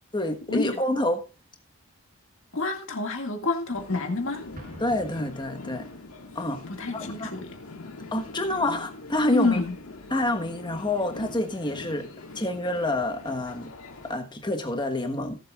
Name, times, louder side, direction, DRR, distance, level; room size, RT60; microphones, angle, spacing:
voice 1, 0.1-1.3 4.8-5.9 6.3-6.6 6.9-7.3 8.1-9.6 10.1-12.1 12.3-13.7 14.0-15.4, left 1 dB, 20° left, 1.3 m, -28 dB
voice 2, 2.5-4.4 6.7-7.5 9.3-9.8, left 3 dB, 60° left, 2.0 m, -28 dB
sound 1, 3.7-14.1, left 2 dB, 80° left, 1.8 m, -43 dB
Explosion, 4.6-6.2, right 1 dB, 35° right, 1.5 m, -47 dB
17.5 x 7.8 x 2.4 m
head